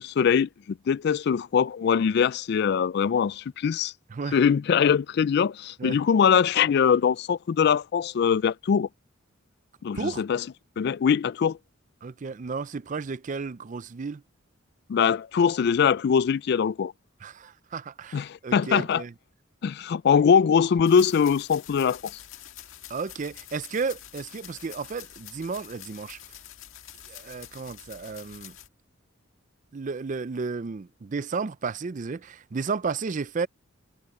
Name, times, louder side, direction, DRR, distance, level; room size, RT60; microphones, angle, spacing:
voice 1, 0.0-3.9 4.3-8.9 9.8-10.5 10.8-11.6 14.9-16.9 18.1-19.0 19.6-22.2, left 7 dB, 55° left, 0.3 m, -22 dB
voice 2, 12.0-14.2 17.2-19.1 22.9-26.2 27.1-28.5 29.7-33.5, right 4 dB, 40° right, 0.4 m, -33 dB
sound 1, 20.8-28.7, left 11 dB, 90° left, 1.7 m, -46 dB
head